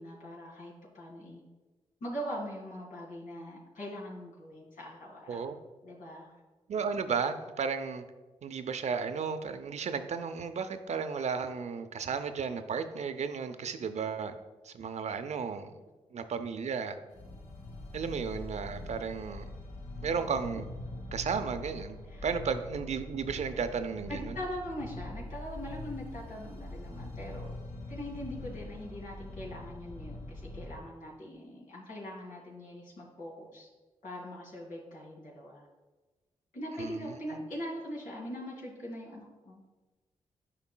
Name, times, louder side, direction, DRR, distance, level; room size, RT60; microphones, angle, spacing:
voice 1, 0.0-1.4 2.0-5.4 5.8-6.3 22.1-22.3 24.1-27.6 27.9-33.7 34.0-35.7 36.5-39.6, equal, 80° left, -5 dB, 2.1 m, -42 dB
voice 2, 6.7-8.0 8.4-14.4 14.6-15.7 16.1-17.0 17.9-19.5 20.0-20.7 21.1-24.4 36.8-37.4, right 6 dB, 60° right, 9 dB, 0.5 m, -34 dB
sound 1, 17.1-30.8, left 2 dB, 55° left, 1.2 m, -43 dB
9.9 x 5.2 x 2.2 m, 1.2 s
supercardioid pair, 40°, 13 cm